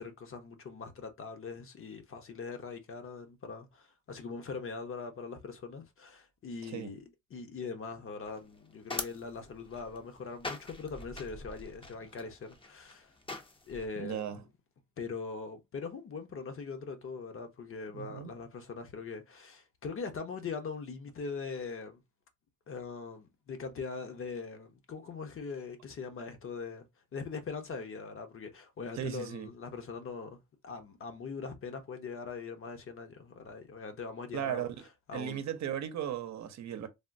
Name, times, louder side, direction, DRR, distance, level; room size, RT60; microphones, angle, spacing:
voice 1, 0.0-7.0 7.3-13.1 13.7-14.3 15.0-22.0 22.7-26.9 27.1-34.7 35.1-35.5, left 5 dB, 45° left, 0.8 m, -41 dB
sound 1, 8.3-13.9, left 2 dB, 20° left, 0.6 m, -44 dB
voice 2, 14.0-14.4 17.9-18.3 28.9-29.5 34.3-34.7 35.1-36.9, right 10 dB, 65° right, 0.7 m, -36 dB
3.5 x 2.1 x 2.5 m
cardioid pair, 90°, 30 cm